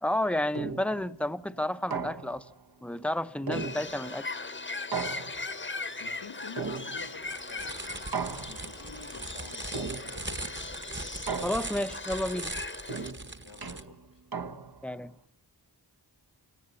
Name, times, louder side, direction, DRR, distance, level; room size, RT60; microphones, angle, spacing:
voice 1, 0.0-2.5 2.8-4.3 11.4-12.5 14.8-15.1, left 1 dB, 5° left, 0.8 m, -31 dB
sound 1, 0.5-1.1 1.9-2.6 3.5-4.2 4.9-5.7 6.6-7.3 8.1-8.9 9.7-10.4 11.3-12.0 12.9-14.9, right 5 dB, 60° right, 1.4 m, -37 dB
Bird, 3.5-13.1, left 3 dB, 30° left, 1.1 m, -39 dB
voice 2, 6.0-10.9 13.4-14.2, left 5 dB, 80° left, 1.6 m, -49 dB
sound 2, 7.2-13.8, right 2 dB, 25° right, 1.4 m, -40 dB
28.0 x 18.5 x 7.1 m
wide cardioid pair, 60°, 42 cm